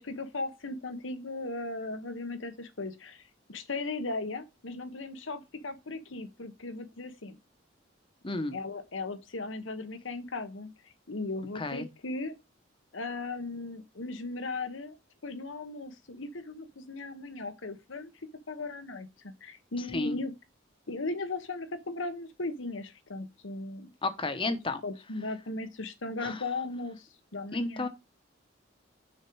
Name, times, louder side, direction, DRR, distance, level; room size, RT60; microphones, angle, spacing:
voice 1, 0.0-3.2 3.5-7.4 8.5-10.7 11.1-12.4 12.9-15.0 15.2-18.1 18.5-20.3 20.9-23.9 24.4-24.5 24.8-27.9, left 3 dB, 85° left, 1.2 m, -37 dB
voice 2, 8.2-8.6 11.5-11.9 19.9-20.2 24.0-24.8 26.2-26.4 27.5-27.9, left 2 dB, 30° left, 1.0 m, -32 dB
6.4 x 5.0 x 4.6 m
head